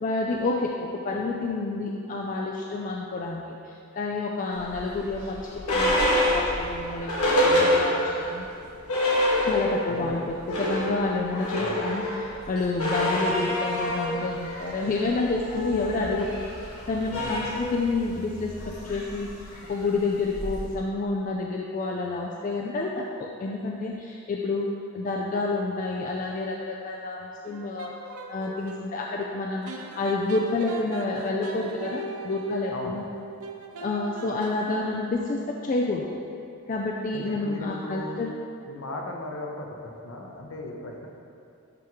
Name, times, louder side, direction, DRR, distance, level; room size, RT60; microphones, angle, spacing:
voice 1, 0.0-8.5 9.4-16.4 16.6-19.3 19.7-24.7 24.9-27.9 28.3-29.7 30.0-33.0 33.8-36.2 36.7-38.3, left 3 dB, 35° left, -1 dB, 0.3 m, -29 dB
sound 1, 4.7-8.3 8.6-8.7 8.9-10.0 10.3-20.7, left 1 dB, 90° left, 1.4 m, -27 dB
voice 2, 9.9-10.2 11.6-11.8 17.1-17.5 32.7-33.0 37.1-38.2 38.7-41.1, left 1 dB, 65° left, 1 dB, 0.7 m, -37 dB
sound 2, 27.4-28.8 29.7-35.1, right 2 dB, 85° right, 0.6 m, -39 dB
10.5 x 3.6 x 3.0 m, 2.6 s
head